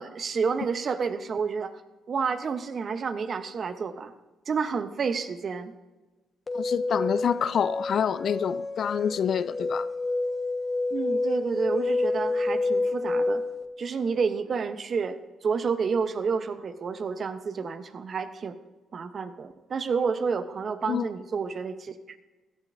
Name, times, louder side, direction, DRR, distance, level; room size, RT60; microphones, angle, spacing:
voice 1, 0.0-1.8 2.1-4.1 4.5-5.7 10.9-13.4 13.8-18.6 18.9-22.2, right 5 dB, 50° right, 11 dB, 0.9 m, -30 dB
voice 2, 6.5-9.9 20.9-21.1, left 8 dB, 60° left, 15 dB, 0.4 m, -27 dB
sound 1, 6.5-13.6, left 2 dB, 35° left, 1.3 m, -29 dB
16.5 x 12.0 x 2.7 m, 1.2 s
supercardioid pair, 55°, 0 cm